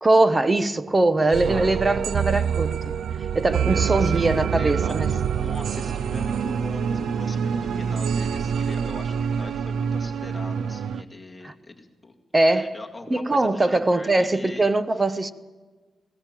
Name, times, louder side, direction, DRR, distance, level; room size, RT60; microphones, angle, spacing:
voice 1, 0.0-2.9 3.3-5.1 11.4-11.5 12.3-12.8 13.1-15.3, right 2 dB, 25° right, 1.1 m, -21 dB
sound 1, 1.3-11.0, right 7 dB, 75° right, 0.5 m, -26 dB
voice 2, 4.0-12.1 12.5-14.7 15.0-15.2, left 2 dB, 15° left, 2.3 m, -41 dB
20.5 x 18.0 x 7.5 m
cardioid pair, 90°, 0 cm